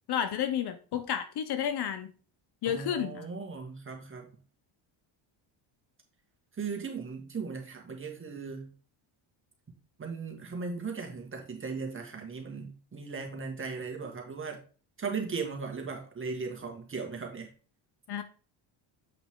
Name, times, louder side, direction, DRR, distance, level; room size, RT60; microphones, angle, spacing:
voice 1, 0.1-2.1 2.6-3.3 18.1-18.2, left 9 dB, 55° left, 9 dB, 0.9 m, -31 dB
voice 2, 2.6-4.3 6.6-8.7 10.0-14.6 15.0-17.5, right 5 dB, 25° right, 2 dB, 1.9 m, -37 dB
7.9 x 5.9 x 3.7 m, 0.38 s
cardioid pair, 140°, 48 cm